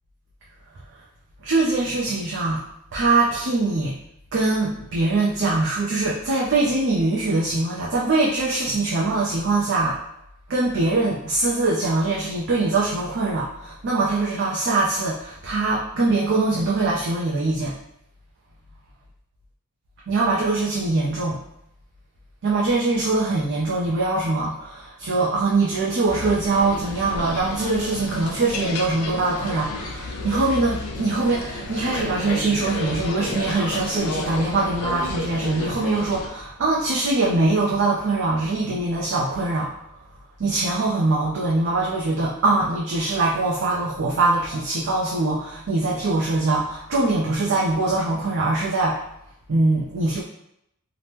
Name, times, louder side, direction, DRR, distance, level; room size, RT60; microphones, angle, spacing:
voice 1, 1.4-2.6 2.9-4.0 4.3-10.0 10.5-17.8 20.1-21.4 22.4-39.7 40.4-49.0 49.5-50.2, right 3 dB, 55° right, -4 dB, 0.4 m, -22 dB
sound 1, 26.1-36.3, left 2 dB, 85° left, 0.5 m, -32 dB
2.8 x 2.1 x 3.3 m, 0.78 s
head